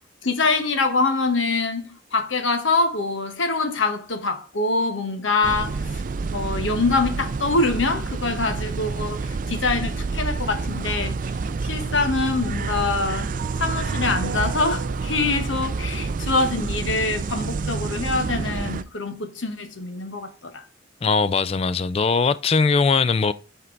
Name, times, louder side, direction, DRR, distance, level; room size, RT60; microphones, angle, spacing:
voice 1, 0.2-5.8 6.3-11.3 11.6-13.3 13.6-20.6, left 3 dB, 80° left, 1.2 m, -24 dB
sound 1, 5.4-18.8, right 4 dB, 45° right, 0.4 m, -28 dB
sound 2, 12.6-17.0, right 5 dB, 60° right, 0.9 m, -41 dB
voice 2, 21.0-23.3, left 4 dB, 30° left, 0.3 m, -20 dB
11.0 x 4.5 x 3.9 m
head